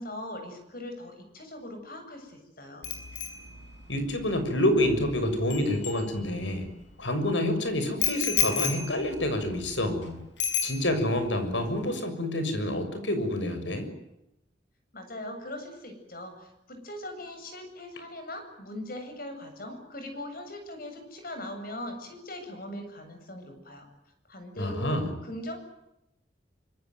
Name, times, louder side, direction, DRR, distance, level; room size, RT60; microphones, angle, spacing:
voice 1, 0.0-2.9 14.9-23.9 24.3-25.6, left 1 dB, 55° left, 6 dB, 7.8 m, -40 dB
Bicycle bell, 2.8-6.7 8.0-10.0 10.4-11.3 11.5-11.8, left 7 dB, 70° left, 6.1 m, -33 dB
voice 2, 3.9-6.7 7.0-10.2 10.6-13.9 24.6-25.1, left 1 dB, 90° left, 9 dB, 6.7 m, -28 dB
26.0 x 24.0 x 9.4 m, 0.87 s
head